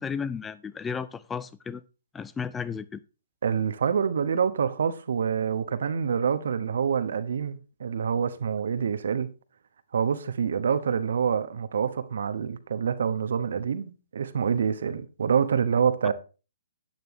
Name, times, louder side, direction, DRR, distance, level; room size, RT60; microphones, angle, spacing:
voice 1, 0.0-1.8 2.1-3.0, left 6 dB, 10° left, 0.4 m, -33 dB
voice 2, 3.4-9.3 9.9-16.1, right 7 dB, 60° right, 1.0 m, -26 dB
11.5 x 9.4 x 3.1 m
figure-of-eight pair, 125°, 0 cm